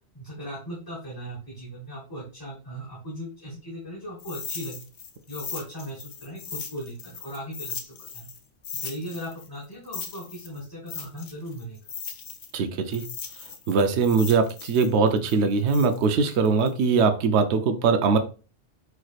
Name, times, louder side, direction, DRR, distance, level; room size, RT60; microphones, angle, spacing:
voice 1, 0.1-4.9 5.3-8.3 8.8-11.8, equal, 20° left, -3 dB, 1.2 m, -38 dB
sound 1, 4.2-8.4 8.6-12.6 12.9-17.0, left 6 dB, 85° left, 1.1 m, -38 dB
voice 2, 12.5-13.0 13.7-18.2, right 5 dB, 70° right, 7 dB, 0.9 m, -21 dB
4.6 x 4.6 x 2.4 m, 0.34 s
omnidirectional pair, 1.2 m